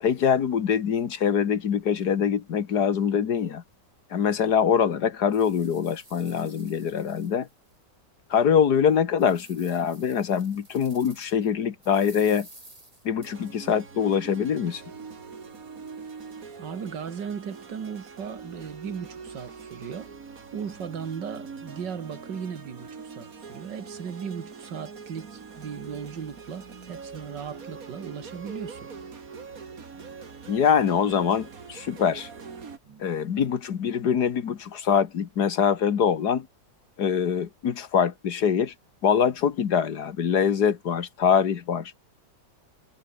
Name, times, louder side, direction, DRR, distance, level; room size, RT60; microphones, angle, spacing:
voice 1, 0.0-3.6 4.1-7.5 8.3-12.5 13.1-14.8 30.5-32.3 33.0-36.5 37.0-38.7 39.0-41.9, left 7 dB, 70° left, 1.9 m, -24 dB
sound 1, 3.7-3.8 4.3-4.4 4.9-7.8 8.2-8.3 8.8-11.5 11.8-13.8, right 1 dB, 20° right, 4.4 m, -52 dB
sound 2, 13.2-32.8, right 5 dB, 55° right, 2.5 m, -43 dB
voice 2, 16.6-20.1 20.5-28.9 32.9-33.1, right 7 dB, 85° right, 2.5 m, -37 dB
omnidirectional pair, 1.9 m